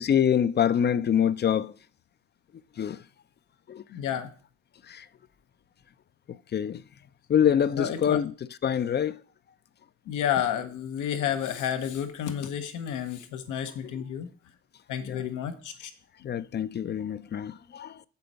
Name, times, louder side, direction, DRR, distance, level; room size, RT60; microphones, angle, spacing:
voice 1, 0.0-1.7 2.8-3.0 3.7-3.8 4.9-5.1 6.3-6.8 7.3-8.3 8.6-9.2 13.8-13.9 15.0-15.3 16.2-18.0, left 9 dB, 35° left, 0.4 m, -25 dB
voice 2, 3.9-4.3 7.8-8.2 10.1-14.3 14.9-15.9 16.2-16.3, left 9 dB, 90° left, 1.0 m, -31 dB
6.9 x 4.3 x 6.8 m
cardioid pair, 90°, 30 cm